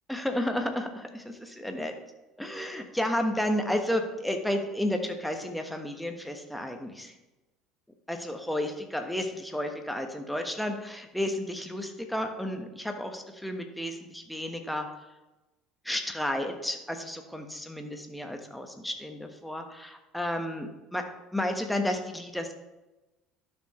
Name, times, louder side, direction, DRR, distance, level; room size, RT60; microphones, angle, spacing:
voice 1, 0.1-1.9 2.4-7.1 8.1-14.9 15.8-21.0 21.3-22.5, left 1 dB, 5° left, 4 dB, 1.3 m, -32 dB
12.0 x 6.4 x 3.2 m, 1.1 s
figure-of-eight pair, 65°, 0 cm